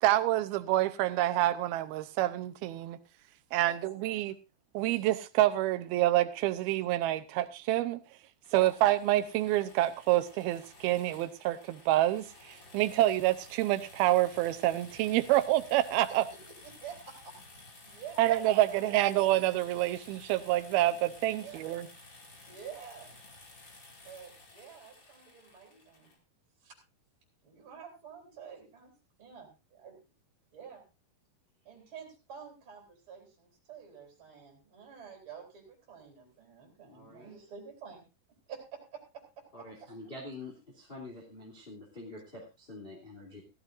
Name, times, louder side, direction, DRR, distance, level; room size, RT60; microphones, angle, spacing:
voice 1, 0.0-3.0 3.5-4.3 4.7-8.0 8.5-16.2 18.2-21.9, right 15 dB, 80° right, 2.6 m, -27 dB
voice 2, 3.6-4.0 8.5-8.7 16.1-16.2 16.8-17.3 17.8-19.2 21.3-21.6 22.5-23.2 24.0-26.1 26.6-26.8 27.4-28.9 29.2-30.0 30.5-30.8 31.6-38.0 38.5-40.0, right 7 dB, 35° right, 4.2 m, -49 dB
sound 1, 8.4-26.2, left 2 dB, 35° left, 2.7 m, -54 dB
voice 3, 36.8-37.3 39.5-43.4, left 2 dB, 15° left, 2.5 m, -46 dB
16.0 x 14.5 x 2.6 m
omnidirectional pair, 4.4 m